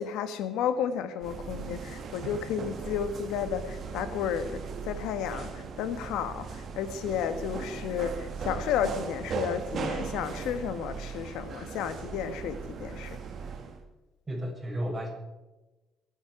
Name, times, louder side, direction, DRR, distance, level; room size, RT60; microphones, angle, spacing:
voice 1, 0.0-13.2, left 8 dB, 90° left, 1.4 m, -32 dB
sound 1, 1.2-13.8, right 5 dB, 55° right, 2.1 m, -38 dB
voice 2, 14.3-15.1, equal, 20° right, 7.4 m, -33 dB
23.5 x 9.9 x 4.9 m
cardioid pair, 105°, 0 cm